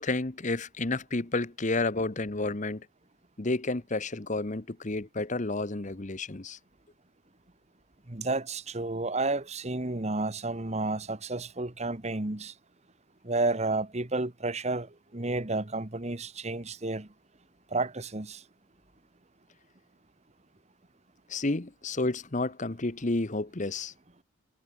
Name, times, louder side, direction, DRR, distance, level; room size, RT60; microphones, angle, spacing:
voice 1, 0.0-2.9 3.4-6.6 21.3-23.9, left 2 dB, 35° left, 1.0 m, -31 dB
voice 2, 8.1-12.5 13.2-17.1 17.7-18.4, right 2 dB, 30° right, 1.4 m, -31 dB
head